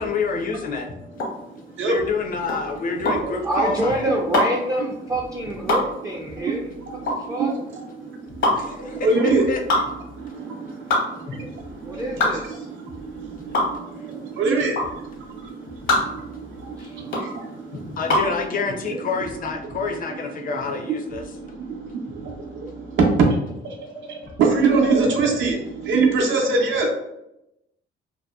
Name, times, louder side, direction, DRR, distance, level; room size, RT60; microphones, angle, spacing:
voice 1, 0.0-4.1 6.3-6.5 7.0-7.3 7.9-8.7 9.5-9.6 9.9-10.9 11.2-12.0 12.5-14.4 15.3-17.0 17.7-22.0 22.4-23.0 23.7-24.3, left 4 dB, 45° left, 3 dB, 0.5 m, -31 dB
sound 1, 1.1-18.4, left 2 dB, 70° left, 0.8 m, -25 dB
voice 2, 3.4-6.7 7.3-7.5 11.9-12.7 16.8-17.0, right 1 dB, 20° right, -3 dB, 0.3 m, -26 dB
voice 3, 6.3-8.7 9.0-9.4 10.1-10.9 11.3-17.3 21.2-23.0 23.3-23.4 24.0-26.9, right 4 dB, 75° right, 1 dB, 0.6 m, -25 dB
2.7 x 2.1 x 2.2 m, 0.85 s
cardioid pair, 90°, 20 cm